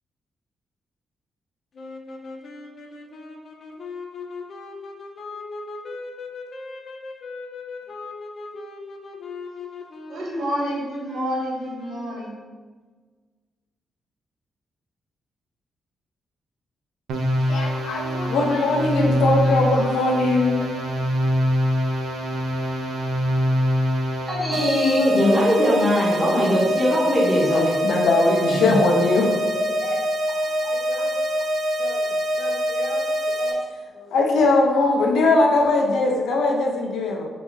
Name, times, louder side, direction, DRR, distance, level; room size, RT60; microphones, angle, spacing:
sound 1, 1.7-12.5, left 3 dB, 40° left, 0.5 m, -38 dB
voice 1, 10.1-12.3, equal, 70° right, -2 dB, 1.2 m, -28 dB
sound 2, 17.1-24.7, equal, 85° right, 0.7 m, -24 dB
voice 2, 17.4-20.8 27.5-31.3 31.8-32.0 32.4-33.1 33.4-33.6 34.0-37.3, left 2 dB, 85° left, 1 dB, 0.8 m, -22 dB
voice 3, 24.3-27.6 28.6-28.8, equal, ahead, -8 dB, 1.3 m, -20 dB
sound 3, 24.5-33.5, equal, 50° right, 0.6 m, -25 dB
4.2 x 2.8 x 4.5 m, 1.4 s
wide cardioid pair, 170°, 0 cm